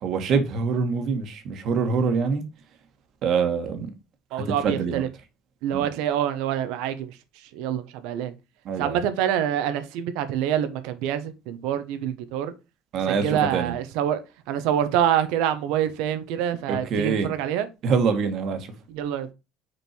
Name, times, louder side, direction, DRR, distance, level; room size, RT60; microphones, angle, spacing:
voice 1, 0.0-2.4 3.2-3.9 4.3-5.0 5.7-5.9 8.7-9.0 12.9-13.8 16.7-17.3 17.8-18.7, right 5 dB, 55° right, 1.8 m, -25 dB
voice 2, 4.3-5.1 5.6-7.2 7.5-8.3 8.8-12.5 13.0-14.2 14.5-17.7 18.9-19.3, right 10 dB, 80° right, 1.1 m, -26 dB
6.4 x 4.5 x 4.5 m
supercardioid pair, 105°, 0 cm